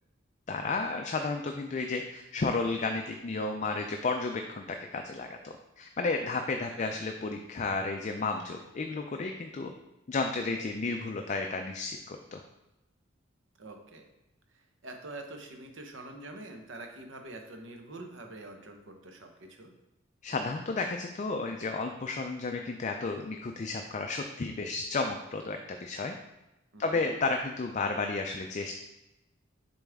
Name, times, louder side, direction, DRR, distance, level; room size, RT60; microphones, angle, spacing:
voice 1, 0.5-9.7 10.1-12.4 20.2-26.1 26.8-28.8, left 3 dB, 40° left, 4 dB, 0.4 m, -32 dB
voice 2, 13.6-14.0 14.5-19.7 26.7-27.1, right 2 dB, 65° right, 4 dB, 1.0 m, -45 dB
7.0 x 4.2 x 3.6 m, 0.98 s
head